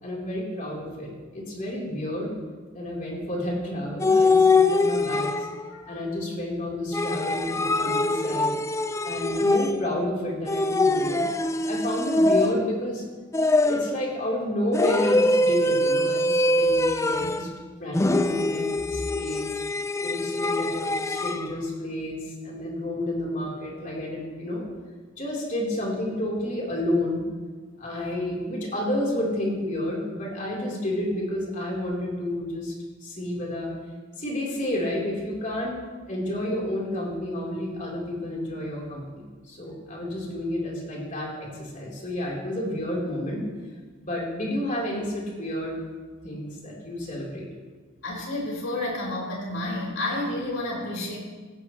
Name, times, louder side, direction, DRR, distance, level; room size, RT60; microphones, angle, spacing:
voice 1, 0.0-2.3 2.7-5.5 5.9-8.5 9.0-11.2 11.7-13.0 13.6-17.5 17.8-19.5 20.0-24.6 25.2-27.2 27.8-32.7 33.0-33.7 34.2-35.8 36.1-43.4 44.0-45.8 46.2-47.5, left 1 dB, 40° left, -4 dB, 4.0 m, -30 dB
sound 1, 4.0-5.7 6.9-10.0 10.5-12.8 13.3-14.0 14.7-17.5 17.9-21.5, left 2 dB, 15° left, 0.4 m, -23 dB
voice 2, 48.0-51.2, left 1 dB, 80° left, -3 dB, 5.2 m, -30 dB
18.0 x 15.0 x 3.3 m, 1.4 s
head